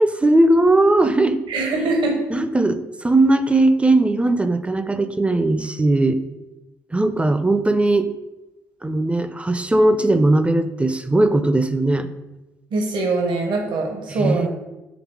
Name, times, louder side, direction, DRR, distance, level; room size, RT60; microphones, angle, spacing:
voice 1, 0.0-1.4 2.3-6.2 6.9-8.1 8.8-12.1 14.1-14.5, right 2 dB, 15° right, 10 dB, 0.6 m, -18 dB
voice 2, 1.5-2.2 12.7-14.5, right 3 dB, 60° right, 2 dB, 1.2 m, -22 dB
7.2 x 3.5 x 4.7 m, 1.0 s
figure-of-eight pair, 45°, 9 cm